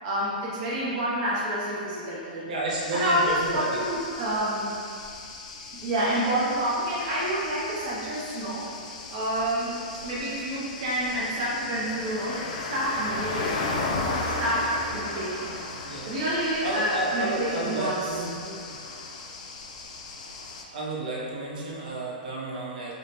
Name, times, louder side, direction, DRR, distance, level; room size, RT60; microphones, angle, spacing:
voice 1, 0.0-2.4 2.9-4.7 5.8-8.7 9.1-13.7 14.0-15.5 16.1-18.1, right 1 dB, 30° right, -8 dB, 0.5 m, -28 dB
voice 2, 2.4-3.8 15.8-16.1 16.6-18.6 20.7-22.9, right 2 dB, 60° right, -5 dB, 0.8 m, -31 dB
sound 1, 2.7-20.6, left 3 dB, 45° left, 0.3 m, -36 dB
5.0 x 2.1 x 2.8 m, 2.5 s
hypercardioid pair, 180°, 5 cm